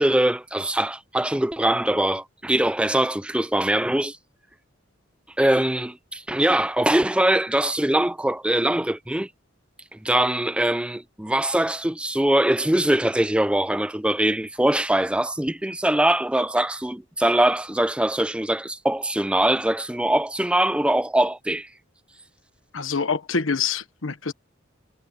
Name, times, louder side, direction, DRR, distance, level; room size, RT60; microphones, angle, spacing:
voice 1, 0.0-4.2 5.4-9.3 9.9-21.7, right 1 dB, 5° right, 0.5 m, -22 dB
voice 2, 22.7-24.3, left 5 dB, 85° left, 1.2 m, -26 dB
head